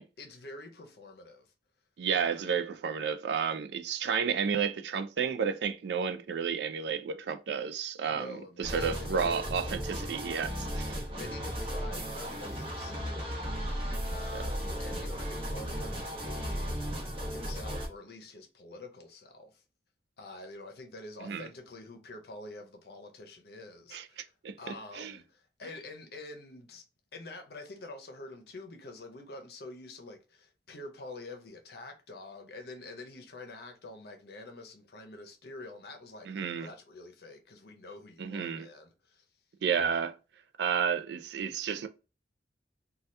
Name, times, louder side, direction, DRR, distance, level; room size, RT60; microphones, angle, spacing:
voice 1, 0.2-1.5 2.2-2.6 8.1-9.4 11.1-16.8 17.3-19.6 20.2-24.3 24.6-26.8 27.1-39.2, left 2 dB, 60° left, 0.7 m, -47 dB
voice 2, 2.0-11.0 14.3-14.5 21.2-21.5 23.9-25.1 36.3-36.7 38.2-38.7 39.6-40.1 40.6-41.9, right 6 dB, 75° right, 0.4 m, -32 dB
sound 1, 8.6-17.9, equal, 30° right, 0.9 m, -35 dB
2.7 x 2.3 x 3.2 m
head